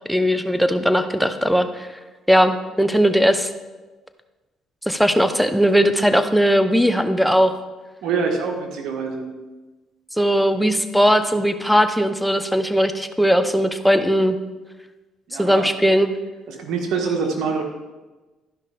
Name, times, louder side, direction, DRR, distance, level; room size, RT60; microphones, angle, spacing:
voice 1, 0.1-1.9 2.3-3.5 4.9-7.5 10.2-14.4 15.4-16.2, equal, ahead, 8 dB, 0.8 m, -18 dB
voice 2, 8.0-9.3 15.3-15.7 16.5-17.6, right 5 dB, 75° right, 3 dB, 1.5 m, -25 dB
12.0 x 5.6 x 5.0 m, 1.2 s
cardioid pair, 85°, 0 cm